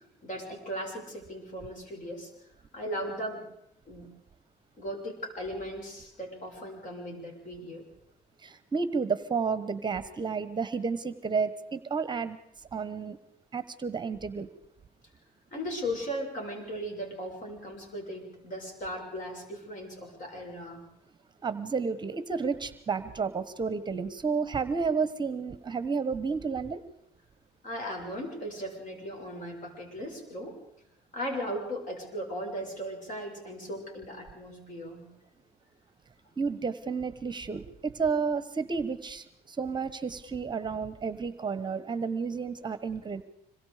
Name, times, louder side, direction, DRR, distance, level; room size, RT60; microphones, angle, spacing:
voice 1, 0.2-2.3 2.7-3.4 3.9-4.1 4.8-7.9 15.5-20.8 27.6-30.6 31.1-35.1, equal, 50° left, 1 dB, 6.9 m, -37 dB
voice 2, 8.4-12.4 12.7-13.2 13.5-14.5 21.4-26.8 36.4-43.2, right 5 dB, 25° right, 13 dB, 1.1 m, -31 dB
26.0 x 22.5 x 5.0 m, 0.81 s
cardioid pair, 110°, 17 cm